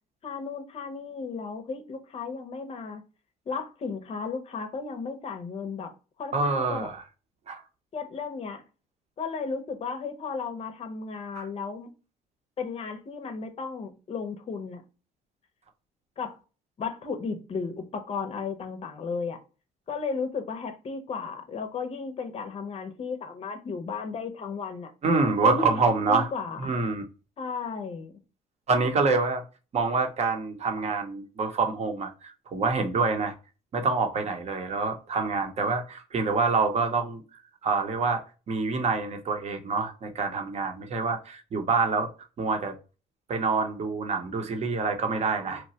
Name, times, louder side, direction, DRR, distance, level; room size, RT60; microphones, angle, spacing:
voice 1, 0.2-3.0 3.5-5.9 6.2-6.9 7.9-8.6 9.2-11.9 12.6-14.8 16.2-16.4 16.8-19.4 19.9-24.9 25.4-26.7 27.4-28.1, left 5 dB, 35° left, 0.7 m, -34 dB
voice 2, 6.3-7.0 7.5-7.6 11.4-11.5 25.0-26.3 26.6-27.0 28.7-29.4 29.7-33.3 33.7-37.2 37.6-42.1 42.4-42.7 43.3-45.7, right 4 dB, 40° right, 0.8 m, -26 dB
3.0 x 2.2 x 2.7 m
cardioid pair, 110°, 17 cm